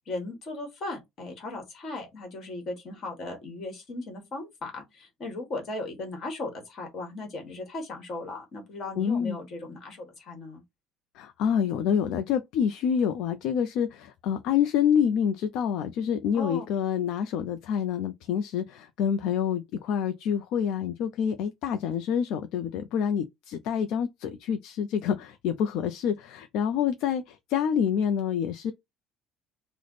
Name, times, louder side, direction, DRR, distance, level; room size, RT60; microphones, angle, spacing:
voice 1, 0.1-10.6 16.3-16.7, left 2 dB, 40° left, 1.3 m, -37 dB
voice 2, 9.0-9.4 11.2-28.7, left 8 dB, 65° left, 0.4 m, -27 dB
3.2 x 2.0 x 3.9 m
cardioid pair, 160°, 0 cm